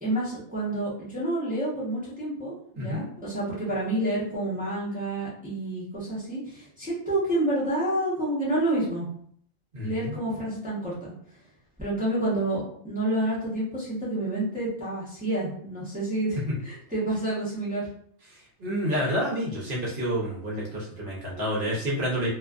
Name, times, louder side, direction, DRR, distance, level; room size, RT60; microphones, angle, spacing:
voice 1, 0.0-9.1 9.8-11.1 11.8-17.9, right 1 dB, 10° right, -9 dB, 0.6 m, -29 dB
voice 2, 9.7-10.2 18.6-22.3, equal, 50° right, -5 dB, 0.7 m, -29 dB
2.4 x 2.4 x 2.3 m, 0.63 s
omnidirectional pair, 1.5 m